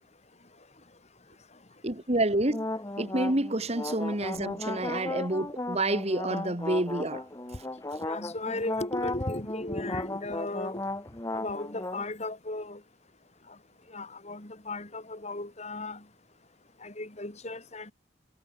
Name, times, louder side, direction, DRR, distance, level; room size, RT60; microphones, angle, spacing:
voice 1, 1.8-2.7 3.0-7.3, right 1 dB, 35° right, 2.3 m, -28 dB
sound 1, 2.4-12.0, left 2 dB, 20° left, 1.2 m, -35 dB
voice 2, 8.0-10.8 11.3-12.8 13.9-16.0 16.8-17.9, left 2 dB, 40° left, 3.5 m, -36 dB
head